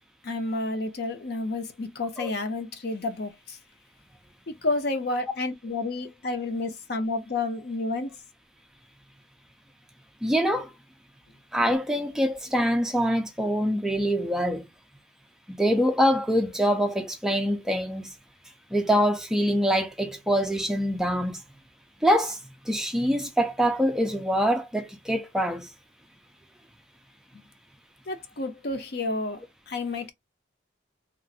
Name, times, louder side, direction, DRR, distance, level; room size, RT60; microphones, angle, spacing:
voice 1, 0.2-3.6 4.5-8.1 28.1-30.1, left 2 dB, 55° left, 0.6 m, -30 dB
voice 2, 10.2-10.7 11.5-14.7 15.5-18.1 18.7-21.4 22.0-22.4 22.7-25.7, equal, 5° right, 0.3 m, -24 dB
3.0 x 2.5 x 2.6 m
head